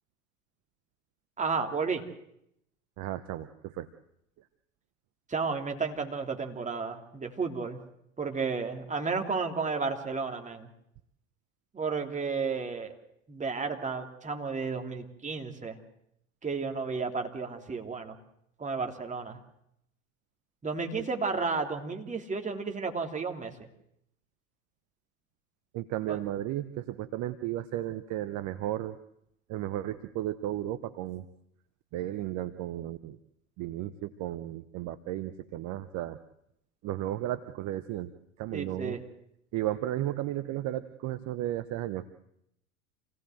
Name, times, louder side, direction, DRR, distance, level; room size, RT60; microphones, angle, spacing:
voice 1, 1.4-2.0 5.3-7.8 8.2-10.7 11.7-12.9 13.3-15.8 16.4-18.2 18.6-19.4 20.6-23.7 26.1-26.2 38.5-39.0, right 4 dB, 15° right, 4 dB, 3.1 m, -32 dB
voice 2, 3.0-3.9 25.7-29.0 29.5-31.2 31.9-33.2 33.6-36.2 36.8-38.1 38.4-39.0 39.5-42.1, right 13 dB, 40° right, 14 dB, 1.1 m, -34 dB
27.5 x 17.5 x 7.9 m, 0.78 s
figure-of-eight pair, 80°, 43 cm